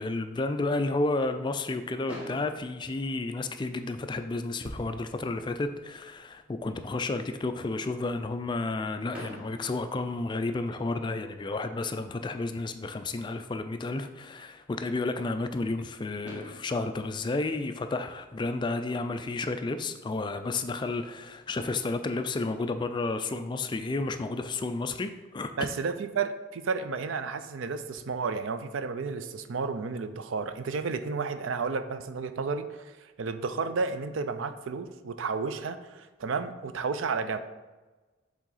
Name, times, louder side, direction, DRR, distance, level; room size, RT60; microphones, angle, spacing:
voice 1, 0.0-25.5, left 3 dB, 25° left, 8 dB, 0.3 m, -31 dB
Fireworks, 2.1-4.1 4.9-5.0 5.2-5.4 5.7-5.8 9.1-10.9 12.6-12.7 15.8-15.9 16.2-18.5, equal, 5° right, 1.4 m, -47 dB
sound 1, 4.7-8.3 8.6-8.8, equal, 55° right, 1.0 m, -50 dB
voice 2, 25.6-37.4, right 4 dB, 85° right, 10 dB, 0.5 m, -32 dB
7.3 x 3.7 x 4.0 m, 1.2 s
head